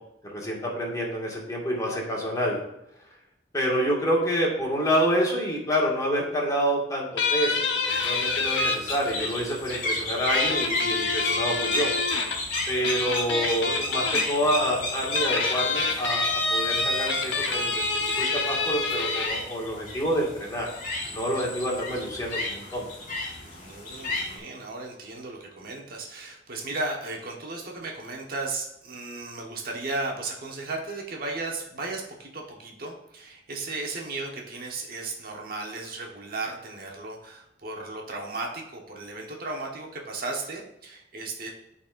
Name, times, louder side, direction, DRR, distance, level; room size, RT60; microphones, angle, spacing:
voice 1, 0.2-2.6 3.5-11.9 12.7-20.7 21.1-22.8, equal, 20° left, -3 dB, 1.9 m, -28 dB
sound 1, 7.2-8.8 10.3-12.4 12.8-14.2 15.0-19.3, left 3 dB, 85° left, 0.9 m, -27 dB
sound 2, 7.9-24.4, left 2 dB, 50° left, 1.8 m, -32 dB
voice 2, 23.4-41.5, right 3 dB, 55° right, 0 dB, 1.2 m, -35 dB
12.5 x 4.2 x 2.5 m, 0.86 s
head